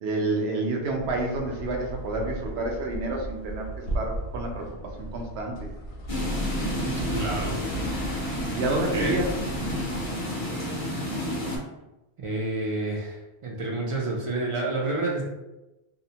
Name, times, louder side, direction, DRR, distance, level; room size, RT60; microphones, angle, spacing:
voice 1, 0.0-3.7 3.9-4.6 5.0-5.7 8.5-9.3 9.7-9.9, right 2 dB, 80° right, 1 dB, 0.8 m, -29 dB
sound 1, 0.8-10.3, right 1 dB, 70° left, 0.8 m, -36 dB
sound 2, 6.1-11.6, left 1 dB, 40° left, 0.6 m, -30 dB
voice 2, 6.8-7.6 8.9-9.1 10.7-10.8 12.2-15.2, right 2 dB, 45° right, -2 dB, 0.4 m, -29 dB
2.7 x 2.0 x 2.7 m, 0.99 s
omnidirectional pair, 1.1 m